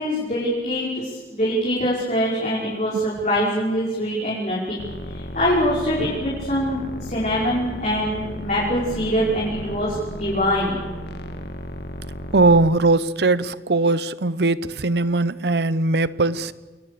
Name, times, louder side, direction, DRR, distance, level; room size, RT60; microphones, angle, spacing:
voice 1, 0.0-4.8 5.1-10.8, equal, 40° left, -5 dB, 5.4 m, -24 dB
sound 1, 4.8-12.7, equal, 70° left, 2.0 m, -34 dB
voice 2, 12.3-16.5, right 3 dB, 70° right, 17 dB, 0.9 m, -20 dB
29.0 x 22.0 x 6.9 m, 1.3 s
head